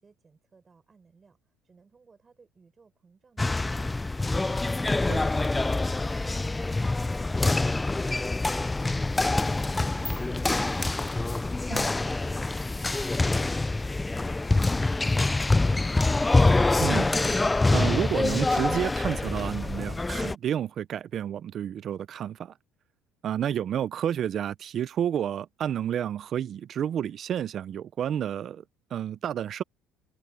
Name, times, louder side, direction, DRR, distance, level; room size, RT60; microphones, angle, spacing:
voice 1, 0.0-11.4, right 4 dB, 25° right, 5.9 m, -59 dB
sound 1, 3.4-20.3, left 2 dB, 10° left, 0.5 m, -25 dB
voice 2, 16.8-22.5 23.2-28.6 28.9-29.6, right 9 dB, 45° right, 0.6 m, -30 dB
cardioid pair, 115°, 0 cm